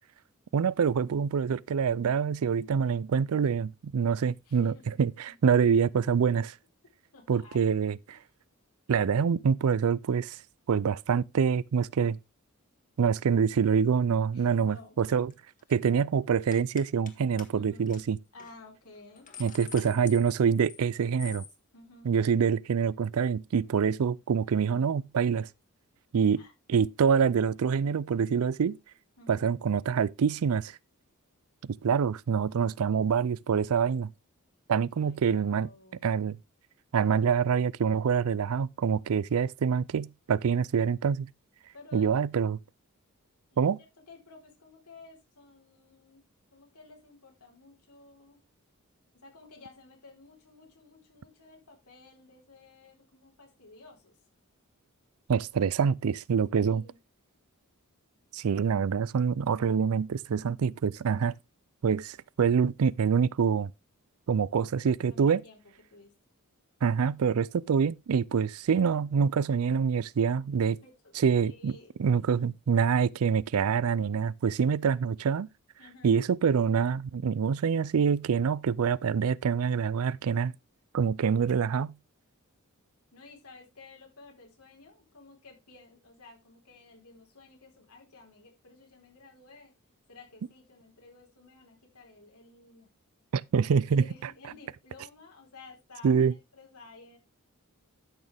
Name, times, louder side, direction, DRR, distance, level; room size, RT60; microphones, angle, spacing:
voice 1, 0.5-6.5 7.3-8.2 8.9-10.4 10.7-12.2 13.0-15.3 15.7-18.2 19.4-21.4 22.1-25.5 26.1-26.4 26.7-28.8 29.3-30.8 31.6-34.1 34.7-35.7 36.0-36.4 36.9-41.3 41.9-42.6 43.6-43.8 55.3-56.8 58.3-61.3 61.8-63.7 64.3-65.4 66.8-70.8 71.2-71.7 72.0-75.5 76.0-80.5 80.9-81.9 93.3-94.0 96.0-96.3, right 6 dB, 70° right, 0.4 m, -26 dB
voice 2, 4.5-4.8 5.3-5.4 7.1-7.7 8.1-8.2 14.3-15.0 17.5-18.0 18.3-19.7 21.7-22.2 23.6-23.7 26.4-26.5 29.2-29.5 34.9-36.0 41.7-42.2 43.5-43.7 44.1-46.2 46.5-48.4 49.1-54.2 56.6-57.0 65.1-66.1 70.7-71.9 73.8-73.9 74.4-74.7 75.8-76.2 83.1-89.7 90.1-92.9 93.9-97.2, left 3 dB, 90° left, 4.4 m, -53 dB
sound 1, 15.1-15.3 15.6-15.9 16.5-17.1 17.4-17.5 17.9-18.0 18.4-18.5 18.9-20.9 21.2-21.5, left 7 dB, 35° left, 1.7 m, -46 dB
12.5 x 6.4 x 3.4 m
head